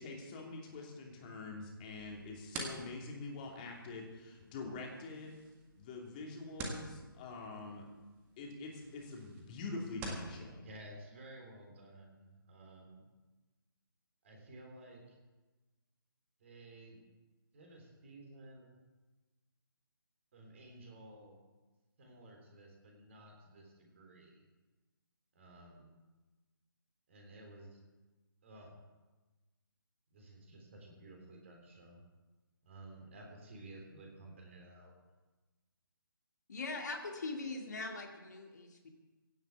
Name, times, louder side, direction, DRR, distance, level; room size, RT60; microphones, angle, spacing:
voice 1, 0.0-5.4 5.8-7.8 8.4-10.6, left 3 dB, 20° left, 0 dB, 2.8 m, -45 dB
sound 1, 2.0-10.3, right 3 dB, 15° right, 1.7 m, -49 dB
voice 2, 10.6-13.0 14.2-15.2 16.4-17.0 17.5-18.8 20.3-21.4 22.0-24.4 25.3-25.9 27.1-27.8 28.4-28.7 30.1-32.0 32.6-34.9, right 1 dB, 35° right, 1 dB, 3.4 m, -54 dB
voice 3, 36.5-38.9, left 3 dB, 50° left, 2 dB, 2.0 m, -41 dB
16.5 x 7.2 x 8.2 m, 1.2 s
figure-of-eight pair, 145°, 12 cm